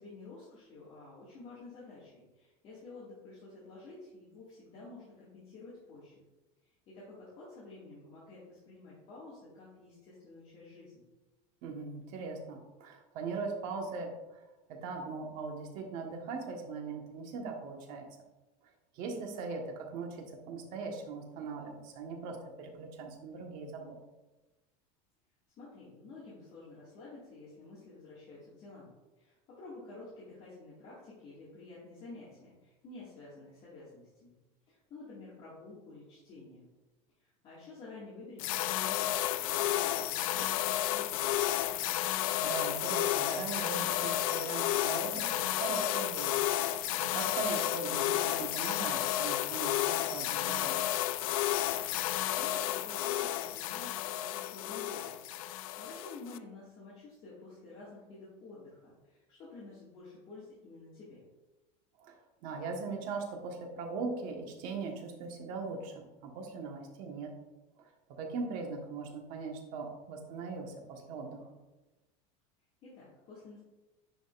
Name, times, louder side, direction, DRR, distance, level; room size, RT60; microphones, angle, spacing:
voice 1, 0.0-6.2 6.6-11.1 25.6-34.4 34.7-36.7 37.2-41.4 52.4-55.2 55.4-61.2 72.8-73.6, left 3 dB, 35° left, -8 dB, 2.1 m, -50 dB
voice 2, 11.6-14.1 14.7-18.1 18.9-24.0 42.0-46.4 47.0-50.9 62.0-62.2 62.4-67.3 68.2-71.4, right 4 dB, 50° right, 1 dB, 1.5 m, -40 dB
sound 1, 38.4-56.4, left 13 dB, 85° left, 0.4 m, -32 dB
10.0 x 5.1 x 2.6 m, 1.1 s
supercardioid pair, 165°, 17 cm